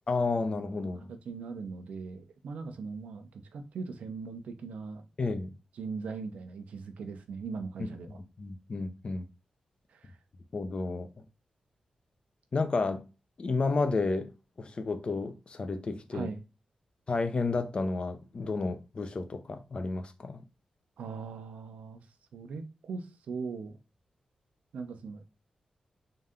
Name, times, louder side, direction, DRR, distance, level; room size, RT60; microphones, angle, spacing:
voice 1, 0.1-1.1 5.2-5.5 7.8-9.3 10.5-11.1 12.5-13.0 13.4-14.3 14.6-16.3 17.1-20.4, left 3 dB, 50° left, 0.7 m, -31 dB
voice 2, 1.1-5.0 5.7-8.2 9.9-10.1 16.1-16.4 21.0-22.0 22.3-23.8 24.7-25.3, right 4 dB, 85° right, 0.7 m, -40 dB
3.9 x 2.7 x 3.6 m
cardioid pair, 60°, 2 cm